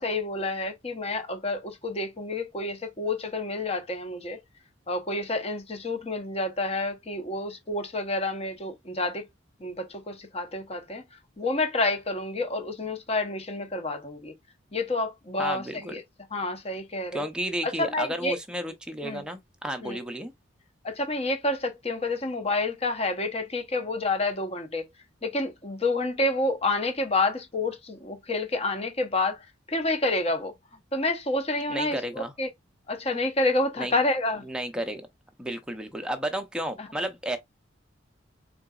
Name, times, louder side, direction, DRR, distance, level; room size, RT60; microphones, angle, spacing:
voice 1, 0.0-4.4 4.9-9.2 9.6-11.0 11.4-14.3 14.7-16.0 16.3-17.3 17.6-18.4 19.0-19.2 19.8-20.0 20.8-24.9 25.2-30.5 30.9-32.5 32.9-34.4 36.8-36.9, left 2 dB, 30° left, 0.8 m, -29 dB
voice 2, 15.4-16.0 17.1-20.3 31.7-32.3 33.8-33.9 34.5-35.0 35.4-37.4, right 1 dB, 5° right, 0.6 m, -32 dB
3.8 x 3.8 x 2.3 m
head